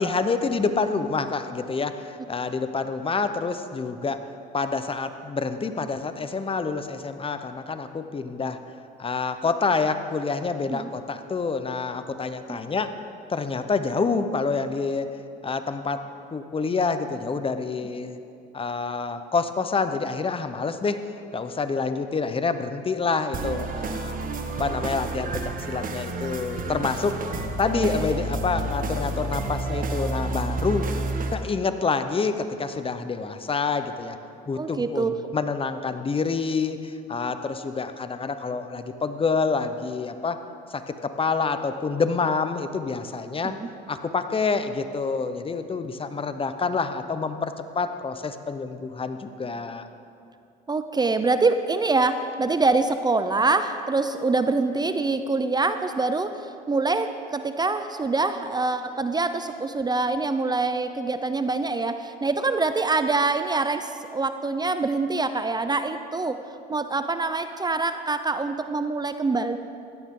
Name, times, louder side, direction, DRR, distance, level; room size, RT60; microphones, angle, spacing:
voice 1, 0.0-4.2 4.5-8.6 9.0-12.9 13.3-15.1 15.4-16.0 16.3-18.2 18.5-21.0 21.3-24.1 24.6-27.1 27.6-30.9 31.3-34.2 34.5-40.4 40.7-43.6 43.9-49.9, left 4 dB, 25° left, 10 dB, 0.9 m, -27 dB
sound 1, 23.3-31.3, right 2 dB, 40° right, 1.4 m, -30 dB
voice 2, 27.8-28.2 34.6-35.2 43.4-43.6 50.7-66.4 66.7-69.6, right 3 dB, 20° right, 9 dB, 0.6 m, -25 dB
16.5 x 12.5 x 3.8 m, 2.5 s
supercardioid pair, 75°, 21 cm